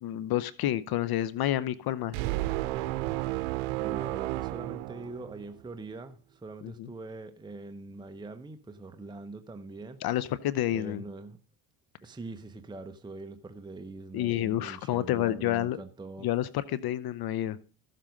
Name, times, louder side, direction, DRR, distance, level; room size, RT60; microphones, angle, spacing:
voice 1, 0.0-2.2 6.6-6.9 10.0-11.0 14.1-15.8 16.2-17.6, left 13 dB, 55° left, 0.7 m, -29 dB
sound 1, 2.1-5.6, right 17 dB, 90° right, 0.8 m, -32 dB
voice 2, 3.8-10.0 10.7-11.4 12.0-16.3, right 3 dB, 10° right, 0.9 m, -43 dB
14.0 x 7.5 x 5.2 m
cardioid pair, 105°, 45 cm